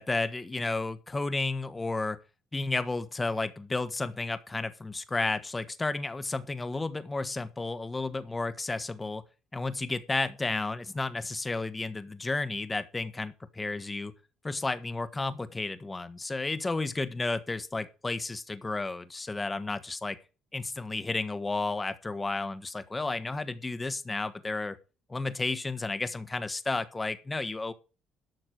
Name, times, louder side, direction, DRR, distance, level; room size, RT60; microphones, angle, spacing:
voice 1, 0.0-2.2 2.5-9.2 9.5-14.1 14.4-20.2 20.5-24.8 25.1-27.7, left 3 dB, 20° left, 1.5 m, -32 dB
12.5 x 6.6 x 6.5 m
cardioid pair, 95°, 0 cm